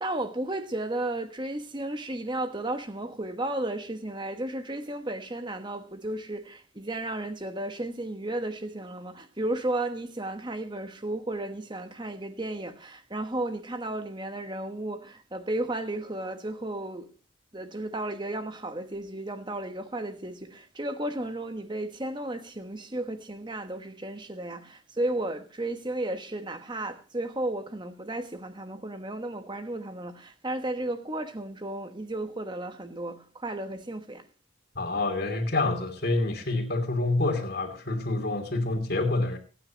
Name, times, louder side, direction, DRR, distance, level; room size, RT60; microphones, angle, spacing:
voice 1, 0.0-17.1 17.5-34.3, right 1 dB, 25° right, 1.3 m, -34 dB
voice 2, 34.7-39.4, left 2 dB, 50° left, 2.9 m, -27 dB
25.0 x 9.6 x 3.0 m
head